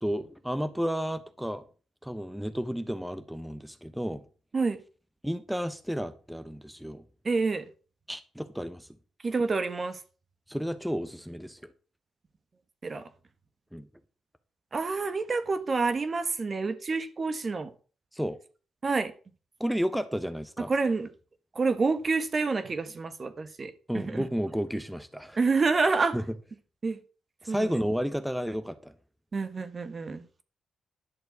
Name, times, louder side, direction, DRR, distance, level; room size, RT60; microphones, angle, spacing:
voice 1, 0.0-1.6 2.0-4.2 5.2-7.0 8.1-8.9 10.5-11.7 13.7-13.9 18.1-18.4 19.6-20.7 23.9-25.4 26.1-26.2 27.4-28.9, equal, ahead, 1.0 m, -32 dB
voice 2, 7.2-7.7 9.2-10.0 12.8-13.0 14.7-17.7 18.8-19.1 20.7-21.1 21.5-24.3 25.4-26.2 26.8-27.0 27.5-27.8 29.3-30.4, right 4 dB, 40° right, 1.4 m, -28 dB
11.0 x 4.4 x 8.0 m
cardioid pair, 65°, 0 cm